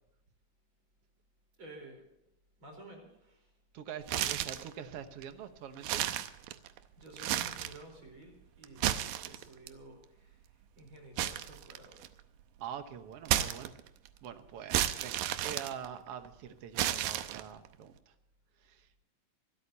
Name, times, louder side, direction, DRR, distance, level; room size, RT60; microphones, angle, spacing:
voice 1, 1.6-2.0 2.6-3.5 7.0-8.9 9.2-10.5 10.8-12.0, right 2 dB, 35° right, 3 dB, 4.9 m, -52 dB
voice 2, 3.7-6.0 12.6-13.7 14.2-14.7 15.0-18.1 18.6-19.0, right 8 dB, 60° right, 8 dB, 1.6 m, -44 dB
sound 1, 4.0-4.7 5.2-5.3 5.8-6.8 7.1-7.8 8.6-9.7 11.2-12.2 13.3-14.1 14.7-16.3 16.8-17.7, right 12 dB, 80° right, 2.5 m, -32 dB
26.0 x 13.0 x 2.9 m, 0.88 s
omnidirectional pair, 4.0 m